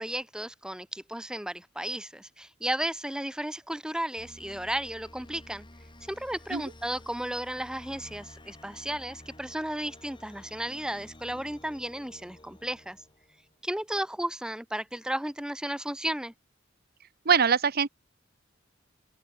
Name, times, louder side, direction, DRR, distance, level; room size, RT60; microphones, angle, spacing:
voice 1, 0.0-5.6 6.1-13.0 13.6-16.3, right 1 dB, 5° right, 0.9 m, -34 dB
sound 1, 4.2-13.6, left 1 dB, 25° left, 6.6 m, -52 dB
voice 2, 17.2-17.9, right 6 dB, 50° right, 0.9 m, -23 dB
open air
head